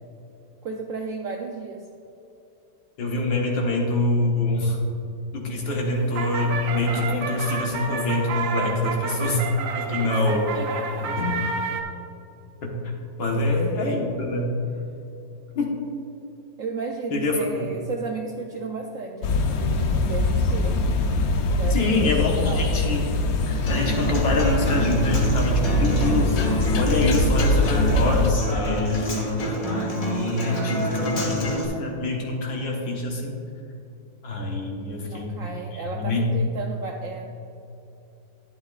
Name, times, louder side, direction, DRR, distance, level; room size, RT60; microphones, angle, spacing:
voice 1, 0.6-1.9 10.0-10.2 10.5-11.3 13.4-13.7 14.1-14.2 16.6-20.9 21.5-22.7 35.0-37.3, right 4 dB, 75° right, 2 dB, 0.7 m, -34 dB
voice 2, 3.0-4.8 5.3-9.4 9.7-10.6 11.0-11.4 12.6-12.8 13.2-14.6 15.6-15.7 17.1-17.7 21.7-23.0 23.4-26.4 26.8-29.6 30.2-33.4 34.2-35.4 35.7-36.3, left 2 dB, 85° left, -1 dB, 2.1 m, -25 dB
sound 1, 5.7-11.8, right 5 dB, 90° right, 1.5 m, -30 dB
sound 2, 19.2-28.3, left 2 dB, 65° left, 1.0 m, -23 dB
Human voice / Acoustic guitar, 23.7-31.7, left 1 dB, 50° left, 1.7 m, -27 dB
11.5 x 9.8 x 2.4 m, 2.8 s
omnidirectional pair, 2.0 m